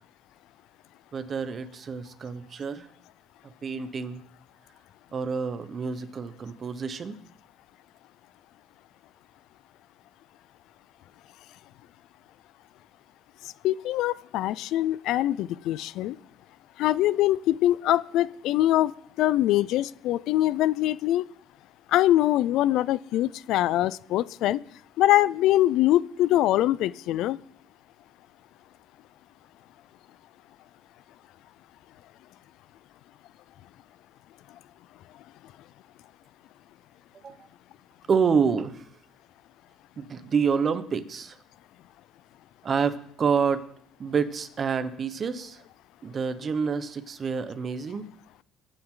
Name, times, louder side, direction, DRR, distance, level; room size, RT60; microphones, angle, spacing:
voice 1, 1.1-2.9 3.6-4.2 5.1-7.2 37.2-37.4 38.1-38.9 40.0-41.4 42.6-43.7 44.0-45.6 46.0-48.1, right 6 dB, 35° right, 11 dB, 1.1 m, -28 dB
voice 2, 13.6-16.2 16.8-18.9 19.2-21.2 21.9-24.6 25.0-27.4, left 14 dB, 70° left, 19 dB, 0.4 m, -23 dB
22.0 x 9.1 x 3.9 m, 0.64 s
cardioid pair, 135°, 0 cm